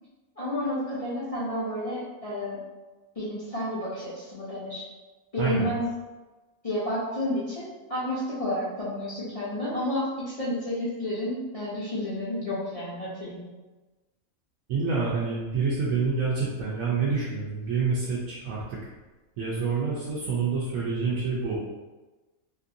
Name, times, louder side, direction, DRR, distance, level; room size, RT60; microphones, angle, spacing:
voice 1, 0.4-2.6 3.2-4.8 5.3-5.8 6.6-13.5, left 1 dB, 55° left, -10 dB, 0.4 m, -31 dB
voice 2, 5.4-5.7 14.7-18.8 19.4-21.6, right 4 dB, 75° right, -7 dB, 1.0 m, -27 dB
2.9 x 2.7 x 2.5 m, 1.2 s
omnidirectional pair, 1.5 m